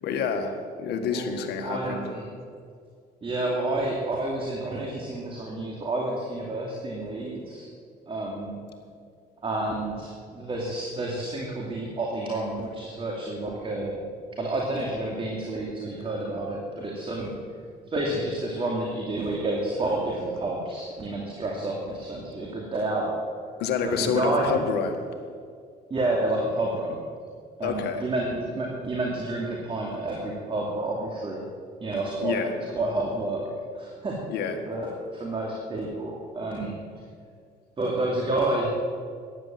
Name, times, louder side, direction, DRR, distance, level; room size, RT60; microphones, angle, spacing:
voice 1, 0.0-2.0 23.6-25.0 27.6-28.0 32.2-32.5 34.3-34.6, left 6 dB, 75° left, 6 dB, 1.8 m, -28 dB
voice 2, 1.1-2.3 3.2-7.7 8.1-8.6 9.4-14.0 14.3-17.3 17.9-23.1 23.8-24.6 25.9-27.0 27.6-31.4 31.8-33.4 33.8-34.2 34.7-36.7 37.8-38.7, right 2 dB, 30° right, -1 dB, 2.6 m, -29 dB
14.5 x 10.5 x 7.6 m, 2.2 s
cardioid pair, 110°, 17 cm